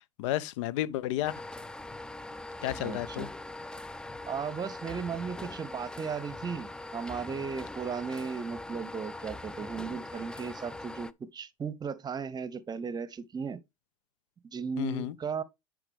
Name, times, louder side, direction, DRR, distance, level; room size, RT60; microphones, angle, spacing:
voice 1, 0.2-1.5 2.6-3.3 14.8-15.1, left 13 dB, 65° left, 0.7 m, -32 dB
sound 1, 1.2-11.1, left 2 dB, 5° left, 0.4 m, -42 dB
voice 2, 2.8-3.3 4.3-13.6 14.4-15.4, right 6 dB, 25° right, 0.9 m, -36 dB
9.8 x 5.0 x 3.5 m
hypercardioid pair, 90°, 17 cm